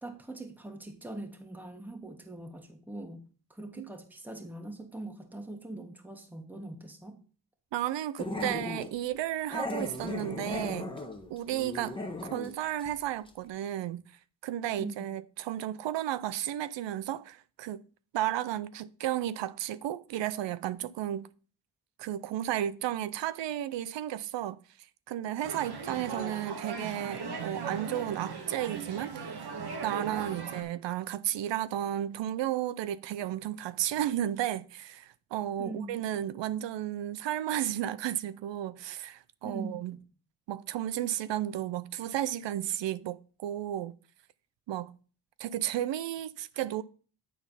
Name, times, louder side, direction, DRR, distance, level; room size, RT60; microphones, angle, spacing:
voice 1, 0.0-3.2 3.5-7.2 14.8-15.1 35.6-36.0 39.4-40.0, right 2 dB, 5° right, 1.5 m, -42 dB
voice 2, 7.7-10.9 11.3-12.0 12.3-14.0 14.4-17.8 18.1-21.3 22.0-24.6 25.1-29.5 29.8-40.0 40.5-43.9 44.7-44.9 45.4-46.8, right 12 dB, 80° right, 0.5 m, -33 dB
Growling, 8.2-8.9 9.5-12.5 12.8-13.0 13.3-13.4, left 2 dB, 10° left, 1.3 m, -37 dB
sound 1, 25.4-30.6, right 5 dB, 65° right, 1.5 m, -38 dB
9.2 x 4.1 x 5.6 m
cardioid pair, 70°, 43 cm